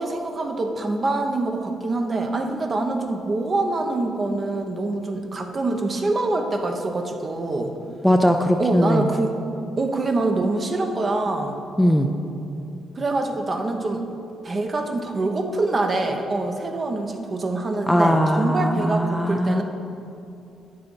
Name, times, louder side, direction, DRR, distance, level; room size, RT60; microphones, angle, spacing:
voice 1, 0.0-7.7 8.6-9.3 9.8-11.6 12.9-14.0 14.4-19.6, right 2 dB, 35° right, 4 dB, 1.0 m, -25 dB
voice 2, 8.0-9.1 11.8-12.1 17.9-19.6, equal, ahead, 4 dB, 0.5 m, -19 dB
9.3 x 6.8 x 5.4 m, 2.7 s
cardioid pair, 90°, 0 cm